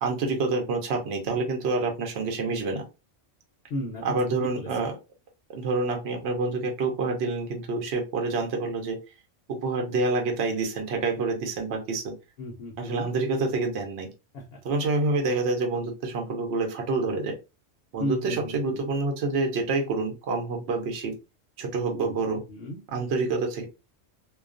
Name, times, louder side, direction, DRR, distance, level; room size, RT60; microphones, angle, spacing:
voice 1, 0.0-2.9 4.0-5.0 5.5-9.0 9.5-12.1 12.8-14.1 14.6-17.4 17.9-21.2 21.6-22.4 22.9-23.7, right 3 dB, 65° right, 3 dB, 0.8 m, -27 dB
voice 2, 3.7-4.0 4.6-4.7 12.4-13.1 14.3-14.6 18.0-18.8 22.0-22.8, left 1 dB, 60° left, 1 dB, 0.7 m, -35 dB
2.2 x 2.2 x 2.4 m, 0.27 s
omnidirectional pair, 1.3 m